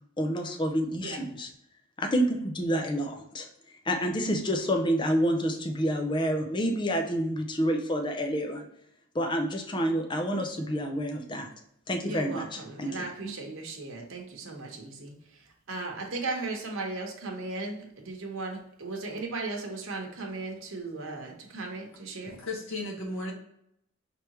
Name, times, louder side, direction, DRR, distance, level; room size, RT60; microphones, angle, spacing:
voice 1, 0.2-1.5 2.0-3.5 3.9-8.7 9.1-11.5 11.9-12.9 13.2-13.3, equal, 20° left, 3 dB, 0.5 m, -28 dB
voice 2, 12.0-22.4, right 3 dB, 65° right, 1 dB, 1.0 m, -37 dB
voice 3, 22.3-23.3, left 2 dB, 75° left, -3 dB, 1.4 m, -35 dB
4.8 x 3.4 x 2.9 m, 0.76 s
head